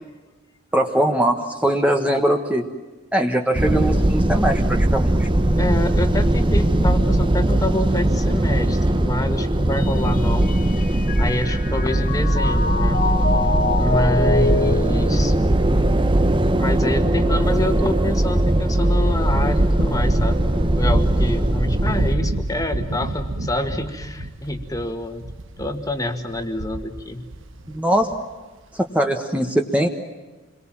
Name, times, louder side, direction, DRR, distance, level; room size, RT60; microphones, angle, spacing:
voice 1, 0.7-2.6 3.1-5.3 27.7-28.1 28.7-29.9, right 1 dB, 5° right, 3 dB, 1.3 m, -21 dB
sound 1, 3.5-22.2, right 1 dB, 25° right, 0.9 m, -19 dB
voice 2, 5.6-10.6 11.2-13.1 13.7-15.4 16.6-25.3 25.6-27.3, left 1 dB, 15° left, 6 dB, 1.8 m, -27 dB
Mallet percussion, 9.8-16.2, left 3 dB, 45° left, 1.8 m, -26 dB
sound 2, 19.2-27.8 28.0-28.1, right 1 dB, 70° right, 1.4 m, -28 dB
28.0 x 22.5 x 7.5 m, 1.3 s
head